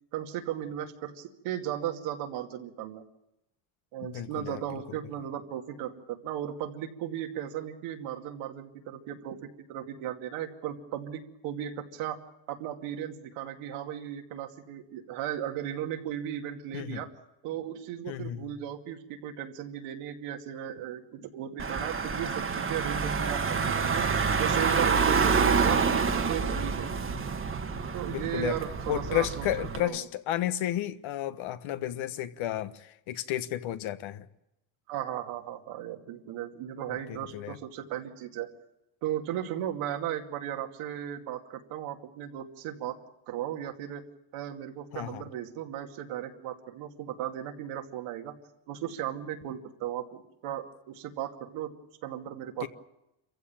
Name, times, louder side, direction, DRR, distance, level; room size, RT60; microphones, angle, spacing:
voice 1, 0.1-3.0 3.9-12.2 12.5-17.1 17.4-25.8 26.1-27.0 27.9-29.5 29.8-30.0 34.9-38.5 39.0-43.0 43.3-44.0 44.3-48.3 48.7-51.7 52.0-52.7, right 11 dB, 85° right, 2.6 m, -36 dB
voice 2, 4.0-4.6 4.9-5.0 16.7-17.0 18.1-18.5 28.1-28.6 28.9-34.3 37.1-37.6 44.9-45.3 52.6-52.7, left 12 dB, 70° left, 1.4 m, -32 dB
Car / Engine, 21.6-29.8, right 5 dB, 25° right, 1.4 m, -27 dB
27.0 x 15.5 x 8.8 m
cardioid pair, 120°, 49 cm